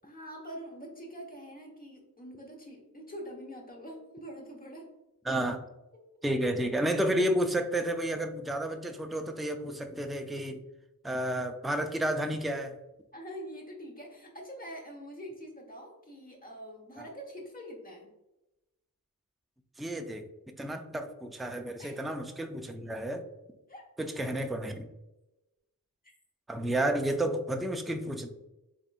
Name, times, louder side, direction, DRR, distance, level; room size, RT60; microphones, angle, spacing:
voice 1, 0.0-4.9 13.1-18.1 21.8-22.0 23.7-23.8 26.0-26.1, equal, 25° left, -1 dB, 1.0 m, -45 dB
voice 2, 5.3-5.6 6.2-10.6 11.0-12.7 17.0-17.1 19.8-20.2 20.6-23.2 24.0-24.9 26.5-28.3, right 1 dB, ahead, 5 dB, 0.3 m, -31 dB
3.6 x 3.5 x 2.4 m, 0.96 s
wide cardioid pair, 90°, 36 cm